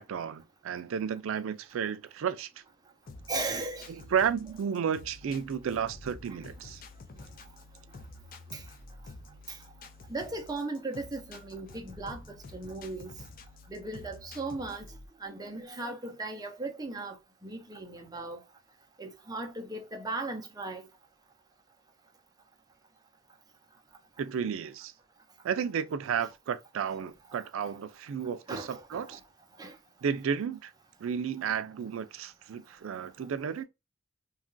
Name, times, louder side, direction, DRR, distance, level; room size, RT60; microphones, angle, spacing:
voice 1, 0.0-2.5 3.9-6.8 24.2-24.9 25.4-29.2 30.0-30.7 31.0-33.6, right 7 dB, 80° right, 0.3 m, -32 dB
sound 1, 3.1-15.1, left 2 dB, 45° left, 0.4 m, -49 dB
voice 2, 3.3-3.9 8.5-8.6 9.5-9.6 10.1-13.1 13.7-14.9 15.2-18.4 19.0-20.9 28.5-29.1 29.6-29.7, right 2 dB, 20° right, 0.5 m, -37 dB
2.9 x 2.3 x 2.5 m
head